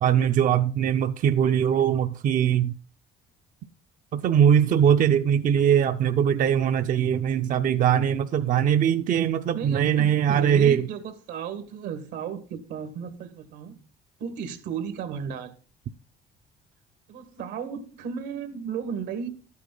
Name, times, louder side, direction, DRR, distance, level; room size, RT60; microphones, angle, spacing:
voice 1, 0.0-2.7 4.1-10.9, right 9 dB, 55° right, 0.5 m, -21 dB
voice 2, 9.5-13.8 14.2-15.6 17.1-19.3, right 7 dB, 90° right, 1.7 m, -34 dB
12.5 x 8.4 x 3.9 m
cardioid pair, 110°, 17 cm